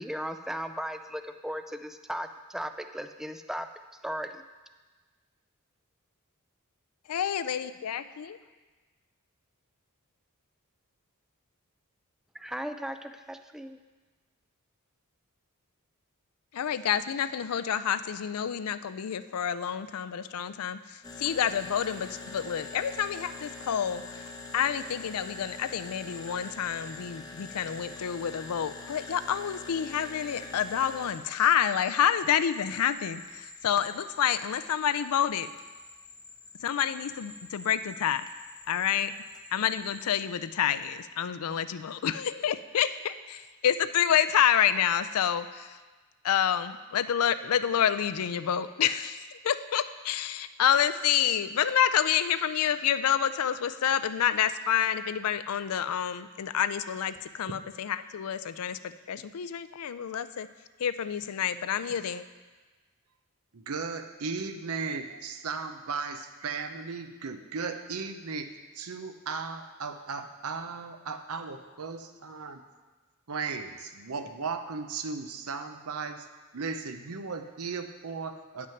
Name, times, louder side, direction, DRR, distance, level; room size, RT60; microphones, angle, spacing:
voice 1, 0.0-3.7 4.0-4.4 12.3-13.8, equal, ahead, 8 dB, 0.3 m, -36 dB
voice 2, 7.1-8.4 16.5-24.2 24.5-35.5 36.6-38.3 38.7-39.1 39.5-45.8 46.2-60.5 60.8-62.2, left 9 dB, 80° left, 12 dB, 0.4 m, -28 dB
sound 1, 21.0-40.2, left 3 dB, 15° left, 0.7 m, -45 dB
voice 3, 63.5-68.5 68.7-72.6 73.3-76.3 76.5-78.7, right 4 dB, 75° right, 8 dB, 0.7 m, -36 dB
9.2 x 6.0 x 5.8 m, 1.3 s
head